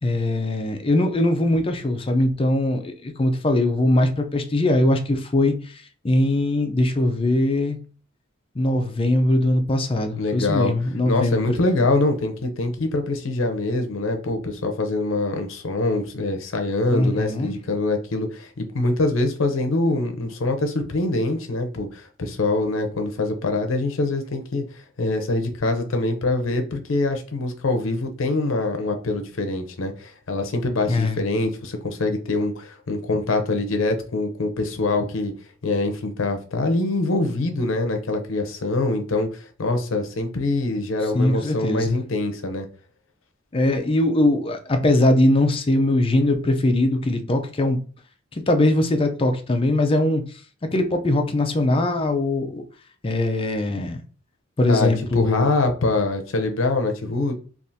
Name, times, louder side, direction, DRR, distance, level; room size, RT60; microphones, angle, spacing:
voice 1, 0.0-7.8 8.6-11.5 16.9-17.5 30.9-31.2 41.1-42.0 43.5-47.8 48.3-50.2 50.7-52.6 53.0-54.0 54.6-55.5, left 1 dB, 25° left, 0.4 m, -21 dB
voice 2, 10.2-10.7 11.0-24.6 25.0-35.3 35.6-42.7 54.7-57.3, left 2 dB, 70° left, 0.6 m, -24 dB
3.4 x 2.4 x 2.7 m
head